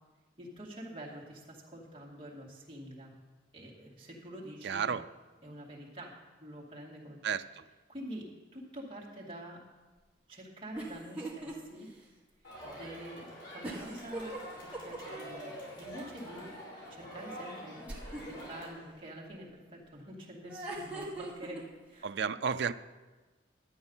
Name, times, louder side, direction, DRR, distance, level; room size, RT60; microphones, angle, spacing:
voice 1, 0.4-3.1 3.5-4.9 5.4-7.2 7.9-9.6 10.3-11.9 12.6-14.3 14.7-16.6 16.9-17.8 18.3-22.1, right 1 dB, 25° right, -4 dB, 2.3 m, -46 dB
voice 2, 4.6-5.0 7.2-7.6 22.0-22.7, right 6 dB, 60° right, 11 dB, 0.4 m, -32 dB
sound 1, 10.8-11.5 11.9-12.0 13.6-15.4 17.9-18.4 20.4-21.6, right 2 dB, 5° right, 1.9 m, -40 dB
Crowd, 12.4-18.7, equal, 80° left, 4.9 m, -46 dB
12.0 x 8.8 x 5.5 m, 1.3 s
head